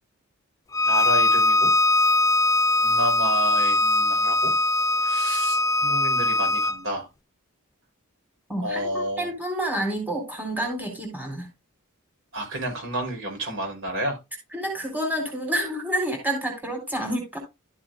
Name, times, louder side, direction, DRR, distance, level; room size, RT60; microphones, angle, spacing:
Bowed string instrument, 0.7-6.8, left 2 dB, 15° left, 0.4 m, -21 dB
voice 1, 0.9-1.7 2.8-4.5 5.0-7.1 8.6-9.3 12.3-14.2, right 1 dB, 65° right, 5.4 m, -30 dB
voice 2, 8.5-11.5 14.5-17.4, right 1 dB, 10° right, 4.0 m, -29 dB
13.0 x 7.7 x 2.5 m
head